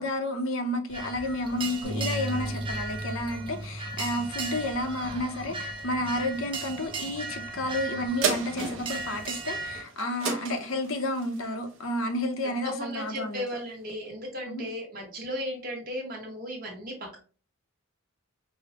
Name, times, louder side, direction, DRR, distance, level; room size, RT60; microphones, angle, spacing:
voice 1, 0.0-13.4 14.5-14.7, left 1 dB, 75° left, 0.6 m, -31 dB
sound 1, 0.9-9.8, right 3 dB, 25° right, 0.4 m, -37 dB
Bass guitar, 1.8-8.1, equal, 90° right, 1.1 m, -39 dB
sound 2, 8.2-13.0 13.5-13.6, right 5 dB, 65° right, 0.8 m, -34 dB
voice 2, 12.6-17.2, equal, 40° right, 1.2 m, -36 dB
4.8 x 2.0 x 2.8 m
head